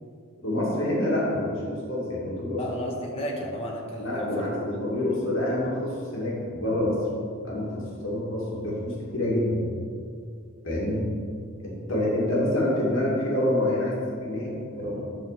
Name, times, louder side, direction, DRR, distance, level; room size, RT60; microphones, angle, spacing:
voice 1, 0.4-2.6 4.0-7.0 7.4-9.7 10.6-11.1 11.6-15.0, left 1 dB, 65° left, -5 dB, 2.4 m, -27 dB
voice 2, 2.6-4.6, equal, 30° left, -2 dB, 1.4 m, -33 dB
10.5 x 3.9 x 6.8 m, 2.3 s
head